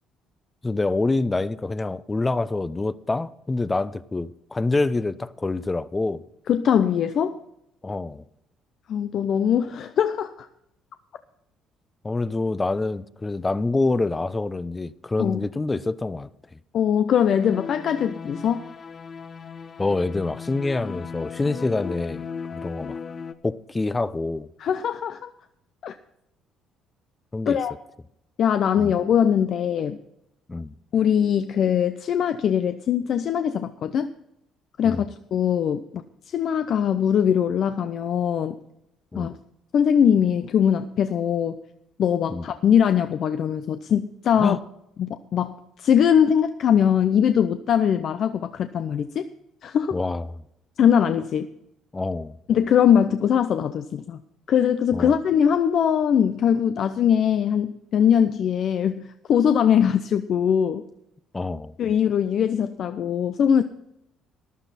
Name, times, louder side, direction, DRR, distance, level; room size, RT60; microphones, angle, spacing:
voice 1, 0.6-6.2 7.8-8.2 12.0-16.3 19.8-22.2 22.5-23.0 23.4-24.5 27.3-27.6 28.8-28.9 30.5-30.7 34.8-35.0 39.1-39.3 42.3-42.4 44.4-44.6 49.9-50.3 51.9-52.4 54.9-55.1 61.3-61.7, left 3 dB, 20° left, 0.7 m, -26 dB
voice 2, 6.5-7.4 8.9-10.5 15.2-15.4 16.7-18.7 24.6-25.3 25.8-25.9 27.5-27.7 28.4-30.0 30.9-34.1 34.8-38.6 39.2-39.3 39.7-41.6 42.0-44.6 45.0-49.3 49.6-50.0 50.8-51.5 52.5-54.2 54.5-60.8 61.8-63.6, left 8 dB, 60° left, 0.6 m, -21 dB
sound 1, 17.3-23.3, left 6 dB, 45° left, 0.9 m, -37 dB
14.0 x 11.5 x 4.2 m
supercardioid pair, 70°, 0 cm